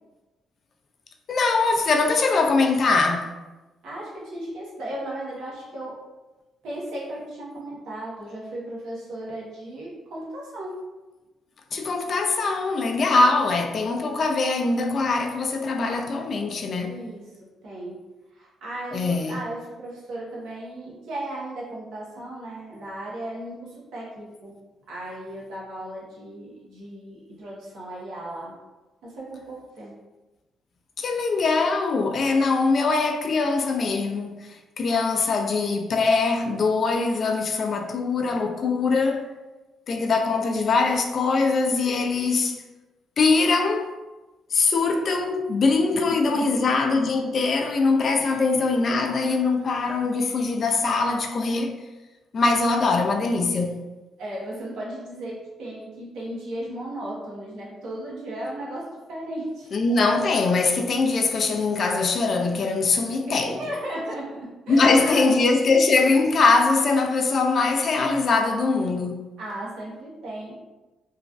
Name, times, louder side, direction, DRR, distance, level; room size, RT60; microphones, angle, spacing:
voice 1, 1.3-3.3 11.7-17.0 18.9-19.4 31.0-34.5 34.8-39.3 39.9-42.6 43.2-43.9 44.5-51.7 52.3-53.8 59.7-63.6 64.7-69.2, left 3 dB, 50° left, 0.4 m, -22 dB
voice 2, 3.8-6.0 6.6-10.8 16.8-17.2 17.6-18.0 18.3-24.5 24.9-28.5 29.0-29.9 46.1-46.6 48.2-48.4 54.2-59.7 63.0-65.3 69.4-70.5, right 1 dB, 85° right, 1.0 m, -36 dB
3.0 x 2.3 x 2.5 m
cardioid pair, 90°, 0 cm